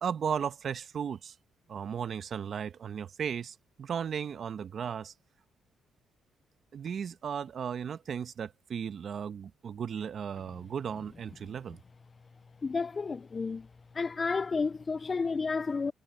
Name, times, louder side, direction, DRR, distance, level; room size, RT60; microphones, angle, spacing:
voice 1, 0.0-1.4 1.7-5.1 6.7-11.8, right 7 dB, 55° right, 1.1 m, -35 dB
voice 2, 12.6-13.7 13.9-15.9, left 4 dB, 35° left, 0.3 m, -31 dB
cardioid pair, 90°, 0 cm